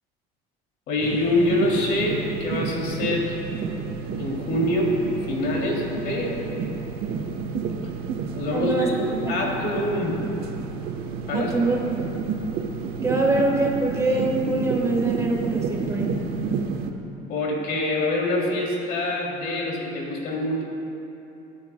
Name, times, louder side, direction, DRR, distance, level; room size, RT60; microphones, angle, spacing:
voice 1, 0.9-3.4 4.2-5.0 5.3-6.5 8.3-10.2 11.3-11.5 17.3-20.6, left 1 dB, 65° left, -1 dB, 2.7 m, -25 dB
sound 1, 1.0-16.9, right 5 dB, 65° right, 1.0 m, -30 dB
voice 2, 8.5-8.9 11.3-11.8 13.0-16.1, right 2 dB, 15° right, 0 dB, 1.4 m, -23 dB
26.5 x 9.4 x 2.2 m, 2.9 s
cardioid pair, 130°, 18 cm